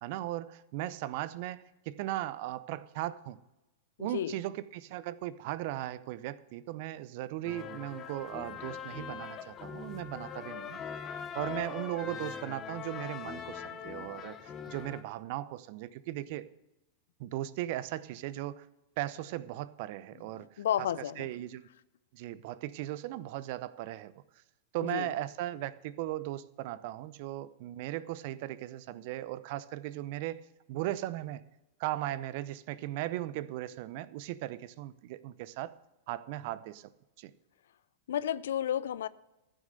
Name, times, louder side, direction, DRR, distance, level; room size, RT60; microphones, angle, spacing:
voice 1, 0.0-3.4 4.0-10.8 11.3-16.5 17.2-18.7 19.0-20.6 21.2-21.7 22.1-24.1 24.7-31.4 31.8-35.7 36.1-36.9 37.2-37.3, right 14 dB, 55° right, 0.6 m, -37 dB
voice 2, 4.0-4.4 20.3-21.3 24.8-25.1 38.1-39.1, left 10 dB, 70° left, 0.5 m, -32 dB
sound 1, 7.4-15.0, left 7 dB, 30° left, 1.1 m, -42 dB
14.0 x 6.4 x 6.6 m
hypercardioid pair, 100°, 0 cm